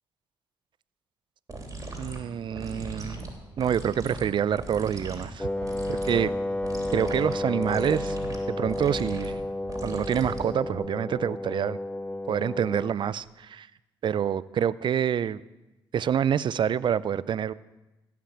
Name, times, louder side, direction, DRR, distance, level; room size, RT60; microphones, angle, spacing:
sound 1, 1.5-10.8, right 2 dB, 35° right, 3.2 m, -40 dB
voice 1, 2.0-3.3 3.6-5.5 5.9-6.3 6.9-9.4 9.8-11.8 12.3-13.7 14.0-15.4 15.9-17.5, right 8 dB, 55° right, 19 dB, 0.4 m, -27 dB
Wind instrument woodwind instrument, 5.4-13.0, left 1 dB, 10° left, 0.7 m, -32 dB
16.0 x 5.9 x 7.3 m, 1.0 s
supercardioid pair, 65°, 10 cm